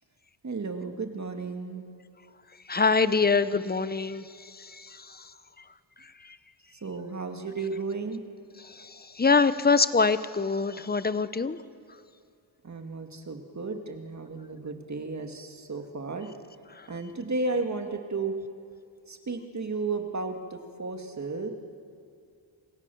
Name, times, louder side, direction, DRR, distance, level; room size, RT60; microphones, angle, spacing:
voice 1, 0.4-1.8 6.8-8.2 12.6-16.3 16.9-18.3 19.1-21.5, right 3 dB, 40° right, 5 dB, 2.1 m, -33 dB
voice 2, 2.7-4.2 8.8-8.9 9.2-11.6, left 4 dB, 20° left, 14 dB, 0.7 m, -23 dB
27.0 x 26.5 x 7.1 m, 2.3 s
wide cardioid pair, 165°, 45 cm